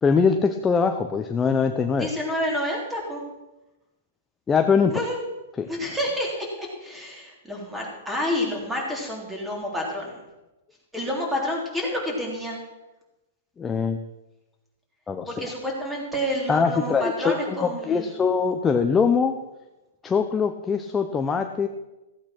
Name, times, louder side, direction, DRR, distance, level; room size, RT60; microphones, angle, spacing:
voice 1, 0.0-2.1 4.5-4.9 5.6-5.7 13.6-14.0 15.1-15.5 16.5-19.4 20.0-21.7, left 5 dB, 15° left, 6 dB, 0.6 m, -22 dB
voice 2, 1.9-3.3 4.9-5.2 5.7-10.2 10.9-12.6 15.3-18.2, equal, 5° right, -1 dB, 3.4 m, -29 dB
15.0 x 8.5 x 6.0 m, 1.0 s
hypercardioid pair, 150°, 0 cm